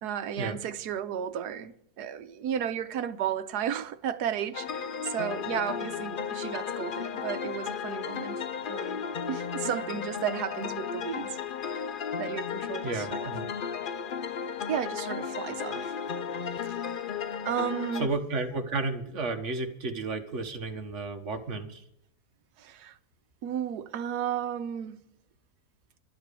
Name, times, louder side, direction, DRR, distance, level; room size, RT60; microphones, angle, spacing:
voice 1, 0.0-11.4 11.6-11.8 12.2-13.3 14.7-15.9 16.5-16.9 17.4-18.1 22.6-23.0 23.4-25.0, right 9 dB, 85° right, 1.4 m, -34 dB
sound 1, 4.5-18.1, left 7 dB, 75° left, 0.4 m, -34 dB
voice 2, 12.8-13.5 18.0-21.8, right 3 dB, 50° right, 1.6 m, -32 dB
12.0 x 8.9 x 8.3 m
omnidirectional pair, 1.7 m